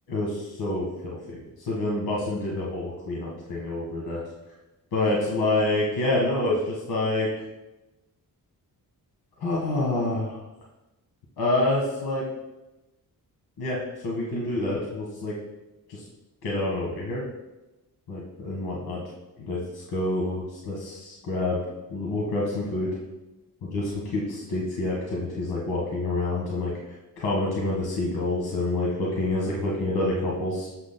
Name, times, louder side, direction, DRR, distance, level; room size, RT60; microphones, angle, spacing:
voice 1, 0.1-1.4 1.7-4.2 4.9-7.3 9.4-10.4 11.4-12.2 13.6-15.3 15.9-16.0 16.4-17.2 18.1-19.0 19.4-21.6 21.9-22.9 23.7-26.7 27.2-30.7, left 2 dB, 85° left, -4 dB, 1.7 m, -27 dB
12.0 x 7.5 x 2.2 m, 1.0 s
wide cardioid pair, 125°, 37 cm